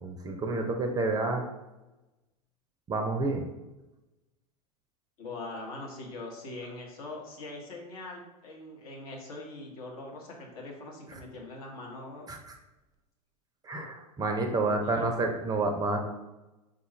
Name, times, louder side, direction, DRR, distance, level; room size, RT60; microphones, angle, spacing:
voice 1, 0.0-1.5 2.9-3.5 12.3-12.4 13.6-16.1, right 2 dB, 20° right, 4 dB, 0.4 m, -29 dB
voice 2, 5.2-12.3 14.6-15.2, left 2 dB, 70° left, 0 dB, 1.0 m, -42 dB
3.8 x 2.3 x 3.0 m, 1.0 s
hypercardioid pair, 90°, 19 cm